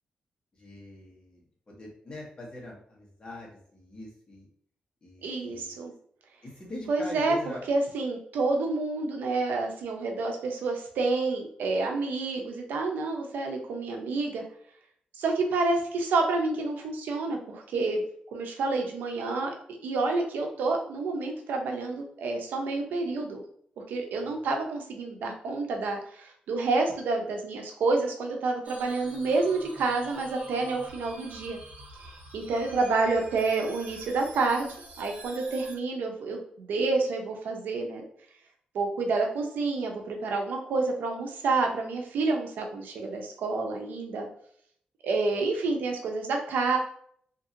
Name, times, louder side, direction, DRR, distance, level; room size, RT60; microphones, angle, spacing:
voice 1, 0.6-4.5 5.0-5.8 6.4-7.7 24.2-24.3 32.4-32.5, left 1 dB, 30° left, -3 dB, 1.3 m, -43 dB
voice 2, 5.2-5.9 6.9-7.4 7.7-14.4 15.2-18.0 18.3-19.5 19.8-23.4 23.9-31.6 32.3-34.7 35.0-38.0 38.7-44.3 45.0-46.8, right 3 dB, 90° right, 3 dB, 0.6 m, -28 dB
sound 1, 28.6-35.8, right 2 dB, 60° right, 1.3 m, -47 dB
2.8 x 2.7 x 2.5 m, 0.63 s
cardioid pair, 75°, 3 cm